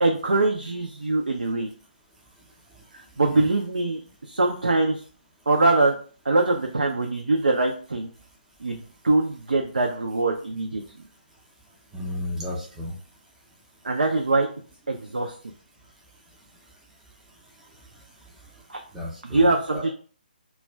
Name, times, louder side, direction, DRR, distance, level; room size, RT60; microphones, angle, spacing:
voice 1, 0.0-1.7 3.2-5.0 5.5-6.0 6.3-8.1 8.6-10.8 13.8-14.5 14.9-15.3 18.7-18.8 19.2-19.9, right 2 dB, 70° right, 2 dB, 0.4 m, -23 dB
voice 2, 11.9-12.9 18.9-19.8, left 1 dB, 5° right, -5 dB, 0.4 m, -33 dB
2.3 x 2.2 x 3.2 m, 0.41 s
figure-of-eight pair, 140°, 5 cm